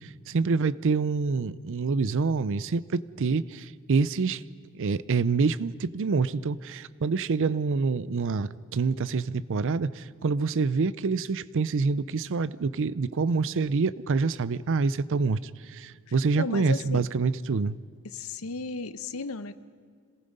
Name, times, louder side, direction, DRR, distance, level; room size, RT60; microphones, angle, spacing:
voice 1, 0.0-4.4 4.7-17.8, right 4 dB, 60° right, 17 dB, 0.5 m, -26 dB
voice 2, 16.4-17.1 18.0-19.6, left 4 dB, 70° left, 13 dB, 0.8 m, -34 dB
27.0 x 19.0 x 5.4 m, 2.1 s
head